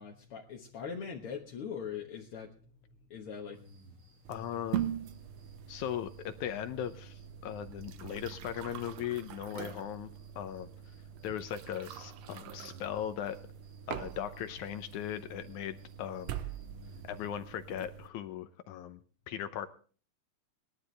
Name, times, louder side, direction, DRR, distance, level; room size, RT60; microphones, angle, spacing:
voice 1, 0.0-2.5 3.1-3.6 9.5-9.8, left 7 dB, 55° left, 0 dB, 1.6 m, -41 dB
sound 1, 3.5-17.3, equal, 40° right, 1.9 m, -60 dB
sound 2, 4.2-18.1, right 11 dB, 80° right, 1.5 m, -43 dB
voice 2, 4.3-4.9 5.7-10.1 10.4-10.7 11.2-13.4 13.9-16.4 17.0-19.0 19.3-19.7, left 10 dB, 75° left, 10 dB, 1.9 m, -38 dB
20.5 x 12.0 x 3.3 m, 0.40 s
omnidirectional pair, 4.0 m